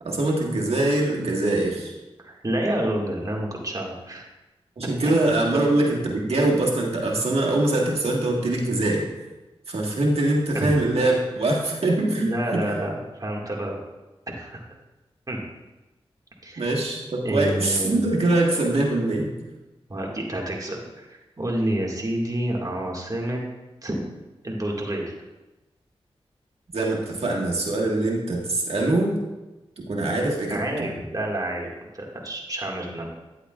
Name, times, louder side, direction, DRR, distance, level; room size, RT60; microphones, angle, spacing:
voice 1, 0.0-1.9 4.8-9.0 9.7-12.8 16.6-19.3 26.7-29.2 29.9-30.9, right 2 dB, 75° right, -1 dB, 1.7 m, -23 dB
voice 2, 2.2-4.2 10.5-10.7 12.2-12.9 13.2-13.8 14.3-14.6 15.3-15.4 16.4-16.6 17.2-18.0 19.9-23.4 23.8-24.1 24.4-25.1 30.5-31.7 31.9-33.1, right 1 dB, 35° right, -2 dB, 2.0 m, -28 dB
10.0 x 8.2 x 2.4 m, 1.1 s
cardioid pair, 45°, 10 cm